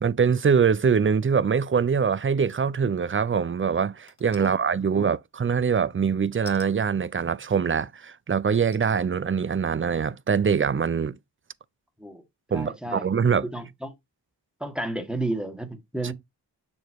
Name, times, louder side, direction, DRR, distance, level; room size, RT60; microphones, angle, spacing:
voice 1, 0.0-11.2 12.5-13.5 16.0-16.1, right 6 dB, 30° right, 0.4 m, -23 dB
sound 1, 4.1-4.5 6.5-6.7 7.6-7.7 8.5-9.0 9.6-9.7, left 4 dB, 45° left, 1.5 m, -47 dB
voice 2, 12.5-13.1 13.5-13.9 14.6-16.1, right 1 dB, ahead, 1.6 m, -32 dB
7.1 x 3.0 x 4.5 m
wide cardioid pair, 70°, 42 cm